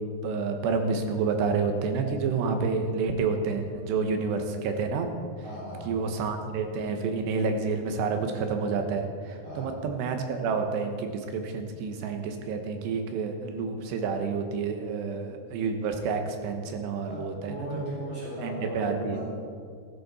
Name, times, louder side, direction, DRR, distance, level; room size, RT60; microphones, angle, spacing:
voice 1, 0.2-5.1 5.9-17.8 18.4-19.3, right 4 dB, 80° right, 5 dB, 3.3 m, -29 dB
voice 2, 5.4-5.9 9.4-9.8 17.0-19.3, equal, 45° right, -8 dB, 4.0 m, -37 dB
15.5 x 14.0 x 4.3 m, 2.1 s
omnidirectional pair, 5.0 m